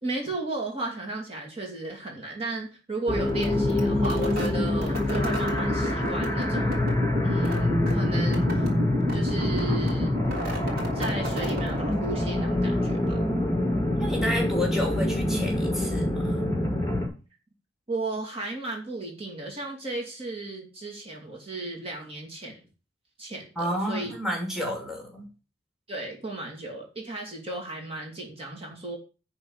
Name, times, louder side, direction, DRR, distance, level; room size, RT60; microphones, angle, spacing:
voice 1, 0.0-6.8 7.2-8.7 9.1-10.2 10.9-13.2 17.9-22.6 23.2-24.1 25.9-29.0, right 2 dB, 30° right, -1 dB, 2.7 m, -35 dB
sound 1, 3.1-17.1, left 1 dB, 15° left, 4.3 m, -26 dB
sound 2, 3.3-12.3, left 1 dB, 55° right, 3.1 m, -30 dB
voice 2, 14.0-16.5 23.6-25.3, left 1 dB, 5° right, 1 dB, 2.6 m, -31 dB
10.5 x 4.4 x 7.3 m, 0.33 s
head